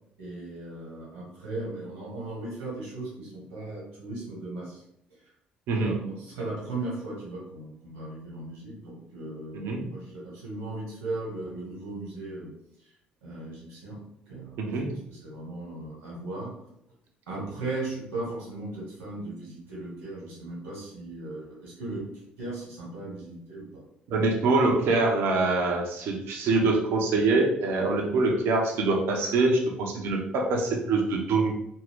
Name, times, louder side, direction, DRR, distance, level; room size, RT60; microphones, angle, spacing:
voice 1, 0.2-4.8 5.8-12.5 13.2-14.0 14.3-16.5 17.3-22.0 22.4-23.7, right 2 dB, 85° right, -6 dB, 1.2 m, -37 dB
voice 2, 5.7-6.0 9.5-9.9 14.6-14.9 24.1-31.5, right 3 dB, 60° right, 1 dB, 0.5 m, -24 dB
2.5 x 2.3 x 3.4 m, 0.74 s
hypercardioid pair, 50°, 5 cm